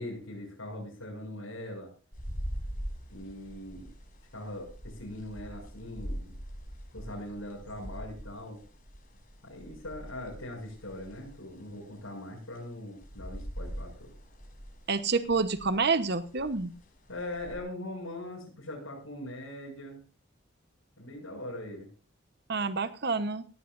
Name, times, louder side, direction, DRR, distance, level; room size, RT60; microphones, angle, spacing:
voice 1, 0.0-1.9 3.1-3.9 4.3-6.3 6.9-8.6 9.4-14.1 17.1-20.0 21.0-21.9, left 1 dB, 85° left, -4 dB, 7.5 m, -41 dB
sound 1, 2.1-17.6, equal, 40° left, 5.5 m, -43 dB
voice 2, 14.9-16.7 22.5-23.5, right 4 dB, 55° right, 11 dB, 1.1 m, -28 dB
18.0 x 16.0 x 2.6 m, 0.37 s
head